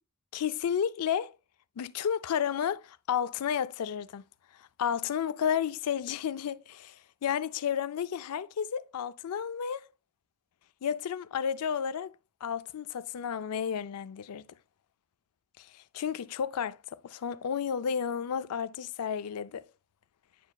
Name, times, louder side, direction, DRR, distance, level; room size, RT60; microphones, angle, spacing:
voice 1, 0.3-1.3 1.8-4.2 4.6-9.9 10.8-12.1 12.4-14.4 15.6-19.6, left 8 dB, 85° left, 0.4 m, -32 dB
9.3 x 4.8 x 2.2 m
head